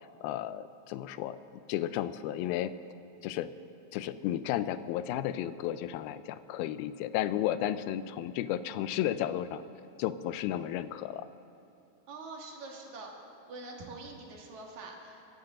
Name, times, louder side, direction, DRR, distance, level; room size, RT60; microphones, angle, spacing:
voice 1, 0.2-1.4 1.7-2.7 3.2-3.5 3.9-9.6 10.0-11.3, left 12 dB, 85° left, 13 dB, 2.4 m, -33 dB
voice 2, 12.1-13.1 13.5-15.2, right 3 dB, 55° right, 0 dB, 2.8 m, -44 dB
24.5 x 13.5 x 3.8 m, 2.7 s
omnidirectional pair, 4.3 m